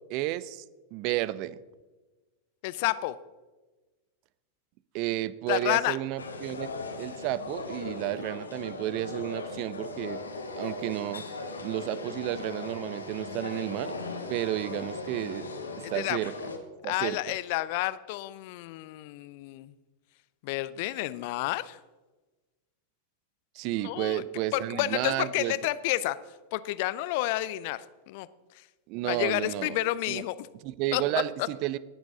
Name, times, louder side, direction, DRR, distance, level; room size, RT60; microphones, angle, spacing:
voice 1, 0.1-0.6 0.9-1.6 4.9-6.7 7.0-10.2 10.6-11.2 11.6-14.0 14.3-15.5 15.9-16.3 16.8-17.2 23.5-25.5 28.9-29.8 30.1-30.2 30.6-31.8, right 16 dB, 45° right, 19 dB, 0.5 m, -32 dB
voice 2, 2.6-3.1 5.5-6.0 15.8-16.2 16.8-19.7 20.4-21.8 23.8-24.2 24.5-26.2 26.5-28.3 29.0-30.5 30.9-31.0, left 16 dB, 50° left, 17 dB, 0.5 m, -30 dB
sound 1, 6.2-16.6, left 3 dB, 75° left, 1.3 m, -38 dB
19.0 x 7.1 x 3.7 m, 1.2 s
figure-of-eight pair, 90°, 0 cm